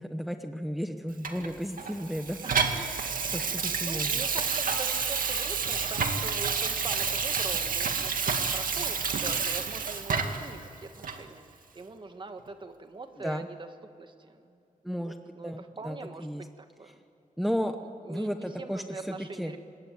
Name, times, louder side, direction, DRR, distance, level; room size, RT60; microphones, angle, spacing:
voice 1, 0.0-2.4 2.7-4.3 13.2-13.5 14.8-15.2 15.4-16.5 17.4-17.8 18.1-19.5, equal, ahead, 6 dB, 0.9 m, -34 dB
Water tap faucet / Sink (filling or washing), 1.2-10.5 11.0-11.2, right 5 dB, 85° right, 2.1 m, -29 dB
voice 2, 3.7-11.4 11.7-14.6 15.0-17.0 18.1-19.6, right 3 dB, 35° right, 7 dB, 1.6 m, -43 dB
26.0 x 21.0 x 9.3 m, 2.6 s
wide cardioid pair, 170°, 14 cm